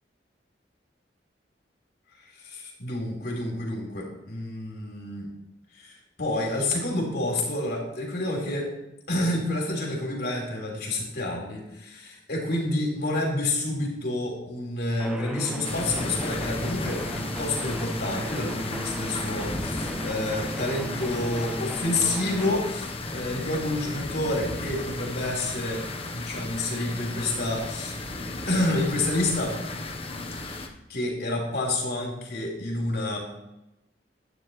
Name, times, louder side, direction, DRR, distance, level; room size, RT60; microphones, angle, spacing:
voice 1, 2.3-5.3 5.7-8.6 9.1-25.8 26.1-28.2 28.5-29.5 30.3-33.2, left 2 dB, 65° left, -1 dB, 3.6 m, -29 dB
sound 1, 15.0-22.6, right 1 dB, 5° right, 0.6 m, -36 dB
sound 2, 15.6-30.7, left 2 dB, 35° left, 1.1 m, -34 dB
12.0 x 9.6 x 3.2 m, 0.92 s
head